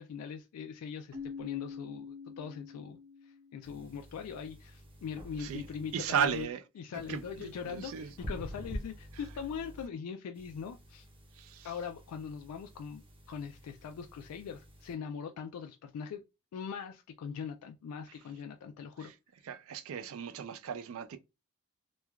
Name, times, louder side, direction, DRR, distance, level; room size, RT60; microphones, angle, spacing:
voice 1, 0.0-3.0 3.2-6.5 6.8-11.1 11.6-13.0 13.3-16.2 16.5-19.1, left 6 dB, 85° left, 0.3 m, -41 dB
Keyboard (musical), 1.1-3.8, left 5 dB, 85° right, 0.7 m, -45 dB
sound 1, 3.6-6.4 6.9-9.9 10.4-14.9, equal, 25° right, 0.6 m, -48 dB
voice 2, 5.9-6.6 6.9-8.1 11.4-11.7 19.0-19.1 19.5-21.2, right 7 dB, 65° right, 0.3 m, -35 dB
3.1 x 2.2 x 2.3 m
head